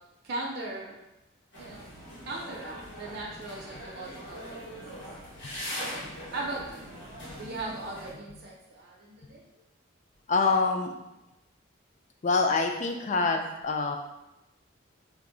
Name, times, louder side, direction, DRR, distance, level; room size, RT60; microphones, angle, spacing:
voice 1, 0.2-1.0 1.6-1.9 2.3-4.8 6.3-7.0 7.4-9.4, right 2 dB, 50° right, -2 dB, 0.5 m, -38 dB
sound 1, 1.5-8.1, equal, 60° left, 1.2 m, -41 dB
voice 2, 10.3-10.9 12.2-14.0, left 4 dB, 35° left, 4 dB, 0.3 m, -26 dB
3.4 x 2.0 x 3.8 m, 0.95 s
head